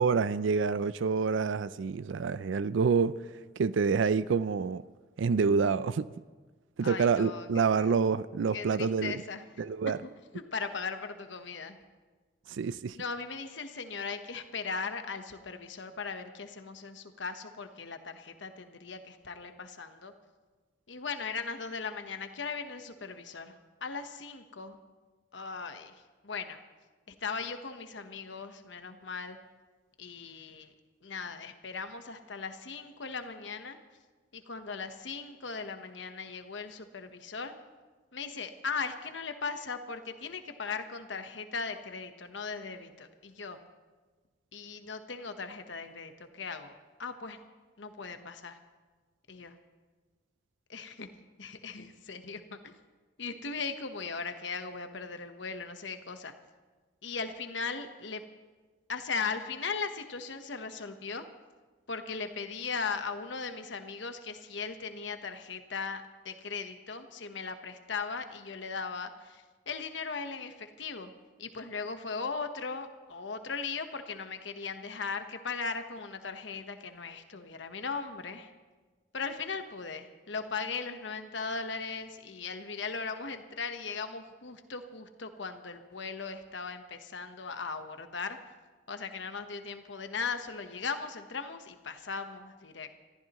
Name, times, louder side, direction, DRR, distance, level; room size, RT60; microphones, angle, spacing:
voice 1, 0.0-3.2 3.6-4.8 5.2-6.1 6.8-9.2 9.6-10.0 12.5-13.0, right 5 dB, 80° right, 0.4 m, -27 dB
voice 2, 6.8-7.5 7.8-7.9 8.5-9.4 10.3-11.8 12.9-20.1 20.9-24.8 25.3-26.6 27.2-29.4 30.0-30.7 31.0-33.8 34.3-37.5 38.1-43.6 44.5-46.7 47.0-47.4 47.8-48.6 49.3-49.5 50.7-51.1 51.4-52.8 53.2-56.3 57.0-58.2 58.9-61.2 61.9-71.1 71.4-78.5 79.1-88.4 88.9-93.0, left 5 dB, 75° left, 1.1 m, -38 dB
26.5 x 14.0 x 3.0 m
head